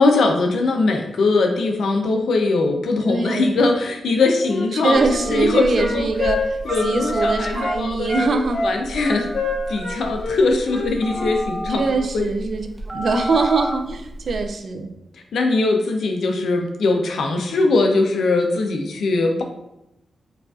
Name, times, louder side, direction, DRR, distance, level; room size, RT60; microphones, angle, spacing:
voice 1, 0.0-5.0 5.3-6.1 6.6-9.3 9.7-11.8 12.1-12.2 15.3-19.4, left 3 dB, 80° left, 3 dB, 0.5 m, -20 dB
voice 2, 3.0-3.7 4.7-8.6 11.8-14.9, right 3 dB, 65° right, 6 dB, 0.4 m, -23 dB
Wind instrument woodwind instrument, 4.4-7.8 8.1-11.3, left 2 dB, 65° left, 1.1 m, -26 dB
Telephone, 4.9-14.5, equal, 20° right, 0.9 m, -32 dB
4.7 x 2.5 x 2.4 m, 0.86 s
cardioid pair, 75°, 0 cm